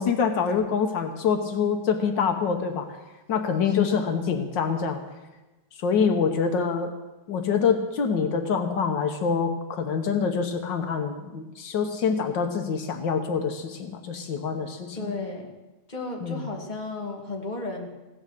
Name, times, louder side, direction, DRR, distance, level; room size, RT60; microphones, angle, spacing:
voice 1, 0.0-2.9 3.3-5.0 5.8-6.9 7.3-15.1 16.2-16.4, left 6 dB, 80° left, 5 dB, 1.8 m, -25 dB
voice 2, 3.7-4.1 14.9-15.5 15.9-17.9, left 2 dB, 25° left, 0 dB, 2.2 m, -34 dB
16.5 x 11.0 x 6.6 m, 1.1 s
omnidirectional pair, 2.0 m